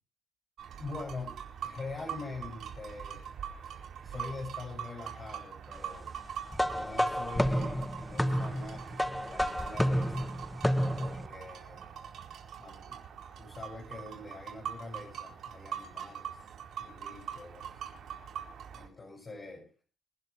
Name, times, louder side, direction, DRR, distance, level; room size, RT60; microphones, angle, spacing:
sound 1, 0.6-18.9, right 8 dB, 70° right, 4.5 m, -43 dB
voice 1, 0.8-3.2 4.0-6.1 6.7-10.3 10.9-11.9 12.6-13.0 13.4-16.5 16.8-17.7 18.7-19.7, left 3 dB, 35° left, -1 dB, 6.9 m, -44 dB
sound 2, 6.5-11.3, equal, 5° left, 0.9 m, -30 dB
28.0 x 11.0 x 3.4 m, 0.36 s
cardioid pair, 90°, 0 cm